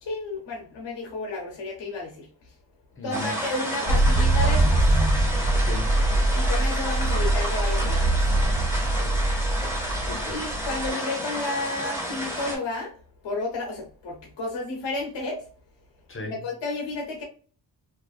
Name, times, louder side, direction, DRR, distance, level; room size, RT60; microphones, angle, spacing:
voice 1, 0.0-2.3 3.0-4.8 6.3-8.2 10.3-13.0 13.2-15.4 16.2-17.2, left 2 dB, 80° left, 0.8 m, -32 dB
voice 2, 3.0-3.3 5.6-5.9 9.0-9.3 9.6-10.5 16.1-16.4, left 1 dB, 30° left, 0.8 m, -38 dB
sound 1, 3.1-12.6, equal, 5° right, 1.4 m, -31 dB
sound 2, 3.9-10.9, right 2 dB, 45° right, 1.0 m, -23 dB
2.4 x 2.3 x 2.3 m
cardioid pair, 50°, 44 cm